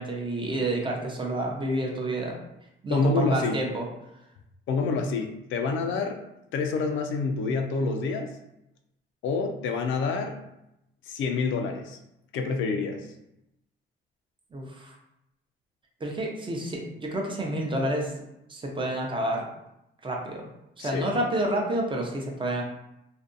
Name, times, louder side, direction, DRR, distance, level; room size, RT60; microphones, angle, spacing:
voice 1, 0.0-2.4 2.8-3.9 14.5-14.9 16.0-18.1 18.5-19.4 20.0-20.5 20.8-22.6, right 1 dB, 25° right, -1 dB, 0.6 m, -29 dB
voice 2, 2.9-3.6 4.7-6.2 6.5-8.3 9.2-10.4 11.1-12.0 12.3-13.1 20.8-21.1, left 4 dB, 75° left, 5 dB, 0.4 m, -27 dB
2.5 x 2.2 x 2.5 m, 0.85 s
cardioid pair, 90°, 20 cm